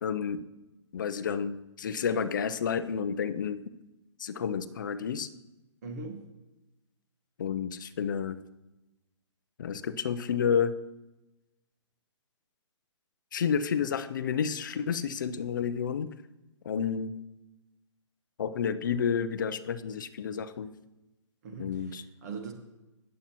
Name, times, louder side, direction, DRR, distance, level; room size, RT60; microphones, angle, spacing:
voice 1, 0.0-0.4 0.9-3.6 4.2-5.3 7.4-8.4 9.6-10.7 13.3-16.1 16.6-17.1 18.4-20.7 21.6-22.0, left 7 dB, 40° left, 12 dB, 0.4 m, -30 dB
voice 2, 5.8-6.3 21.4-22.5, right 3 dB, 35° right, 5 dB, 1.2 m, -40 dB
18.0 x 7.4 x 2.9 m, 1.0 s
hypercardioid pair, 170°, 16 cm